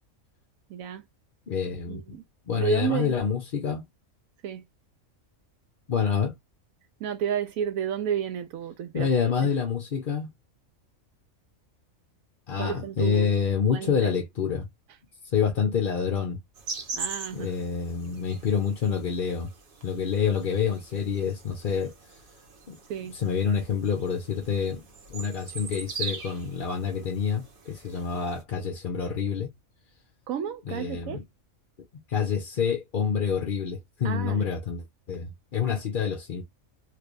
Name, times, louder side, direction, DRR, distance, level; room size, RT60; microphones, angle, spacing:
voice 1, 0.7-1.0 1.9-2.2 2.6-3.2 4.4-4.7 7.0-9.1 9.4-9.5 12.6-13.3 13.7-14.1 16.9-17.6 22.9-23.2 30.3-31.2 34.0-34.5, right 8 dB, 80° right, 1.0 m, -31 dB
voice 2, 1.5-2.0 2.5-3.9 5.9-6.3 8.9-10.3 12.5-14.7 15.2-16.4 17.3-19.5 19.8-22.2 22.7-22.8 23.1-29.5 30.7-31.2 32.1-36.4, left 7 dB, 45° left, 0.8 m, -27 dB
sound 1, 16.6-28.4, right 5 dB, 45° right, 1.0 m, -41 dB
3.3 x 3.2 x 2.4 m
omnidirectional pair, 1.4 m